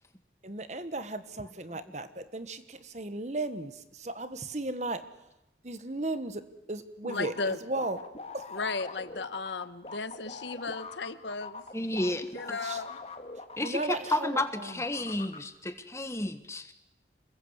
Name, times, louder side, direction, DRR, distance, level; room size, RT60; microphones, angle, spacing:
voice 1, 0.4-3.7 4.0-5.0 5.6-6.4 6.7-8.0 8.3-8.4 12.6-12.8 13.6-14.4, right 2 dB, 40° right, 11 dB, 1.4 m, -35 dB
voice 2, 7.0-7.6 8.5-11.6 12.3-13.0, left 4 dB, 80° left, 13 dB, 1.2 m, -35 dB
sound 1, 7.1-14.2 14.4-15.4, left 3 dB, 35° left, 1.8 m, -43 dB
voice 3, 11.7-12.3 13.6-16.7, left 1 dB, 15° left, 10 dB, 1.4 m, -31 dB
27.0 x 21.5 x 8.1 m, 0.89 s
head